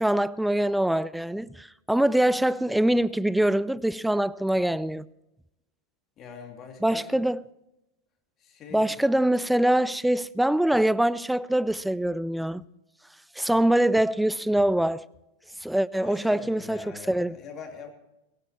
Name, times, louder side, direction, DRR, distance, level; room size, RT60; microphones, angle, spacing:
voice 1, 0.0-5.1 6.8-7.4 8.7-12.6 13.4-15.1 15.6-17.4, right 1 dB, 5° right, 0.4 m, -24 dB
voice 2, 6.2-7.0 8.4-9.0 16.0-17.9, left 6 dB, 30° left, 3.0 m, -43 dB
19.0 x 17.5 x 3.1 m
figure-of-eight pair, 90°, 0 cm